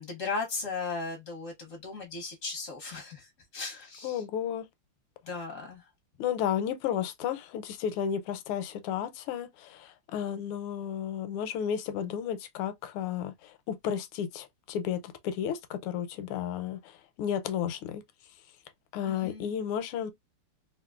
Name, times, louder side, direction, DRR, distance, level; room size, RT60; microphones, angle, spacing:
voice 1, 0.0-4.2 5.3-5.9 19.1-19.5, left 4 dB, 65° left, 0.8 m, -37 dB
voice 2, 4.0-4.7 6.2-18.0 18.9-20.1, left 9 dB, 85° left, 1.5 m, -33 dB
3.5 x 2.6 x 2.3 m
omnidirectional pair, 2.4 m